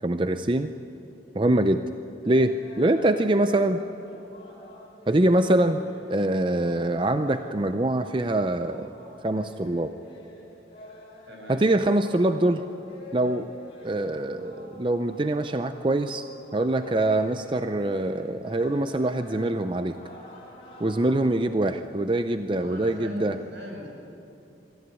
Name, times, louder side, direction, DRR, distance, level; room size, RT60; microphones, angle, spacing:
voice 1, 0.0-0.7 1.3-1.8 2.2-3.8 5.1-5.8 6.1-8.9 9.2-9.9 11.5-12.6 13.1-13.5 13.8-16.2 16.5-20.0 20.8-23.4, right 1 dB, 25° right, 9 dB, 0.5 m, -24 dB
sound 1, 2.2-21.2, left 1 dB, 35° left, 4.7 m, -47 dB
voice 2, 11.3-11.6 22.6-23.9, left 1 dB, 80° right, -1 dB, 7.4 m, -41 dB
23.0 x 14.5 x 9.5 m, 2.9 s
head